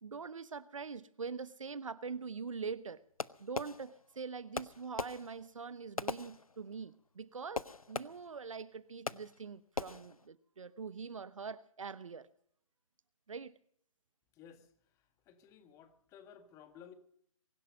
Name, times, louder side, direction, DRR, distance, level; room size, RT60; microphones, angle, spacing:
voice 1, 0.0-3.0 3.4-12.3 13.3-13.5, right 5 dB, 65° right, 16 dB, 1.0 m, -43 dB
Fireworks, 3.2-4.2 4.5-6.9 7.5-8.5 9.1-9.5 9.8-10.3, left 4 dB, 80° left, 0.8 m, -42 dB
voice 2, 14.3-16.9, left 8 dB, 15° left, 9 dB, 1.7 m, -57 dB
23.0 x 12.0 x 5.2 m, 0.64 s
figure-of-eight pair, 135°, 18 cm